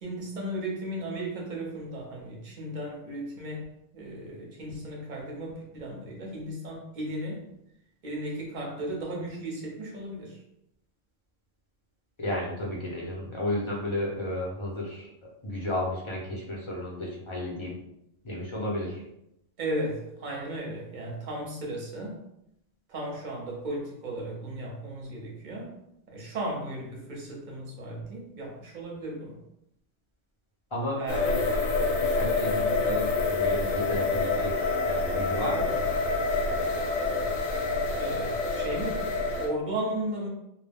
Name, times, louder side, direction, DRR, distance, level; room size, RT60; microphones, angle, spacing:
voice 1, 0.0-3.6 3.9-7.4 8.0-10.4 19.6-22.2 22.9-25.7 26.1-29.4 31.0-31.2 32.4-32.5 38.0-39.1 39.4-40.3, right 1 dB, 45° right, -1 dB, 0.8 m, -35 dB
voice 2, 12.2-15.1 15.4-17.8 18.2-19.0 30.7-31.4 32.0-35.8, left 1 dB, 35° left, -4 dB, 0.5 m, -33 dB
sound 1, 31.1-39.5, left 3 dB, 85° left, 0.9 m, -27 dB
2.3 x 2.1 x 3.4 m, 0.80 s
omnidirectional pair, 1.2 m